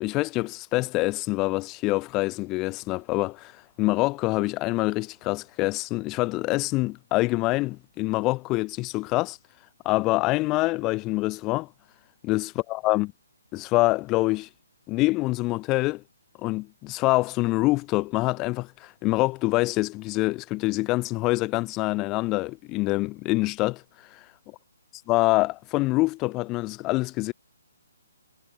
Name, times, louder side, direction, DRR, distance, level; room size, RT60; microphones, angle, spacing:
voice 1, 0.0-3.5 3.8-9.4 9.8-11.7 12.2-13.1 13.5-14.5 14.9-16.0 16.4-23.8 25.1-27.3, left 21 dB, 10° left, 0.8 m, -25 dB
hypercardioid pair, 180°, 0 cm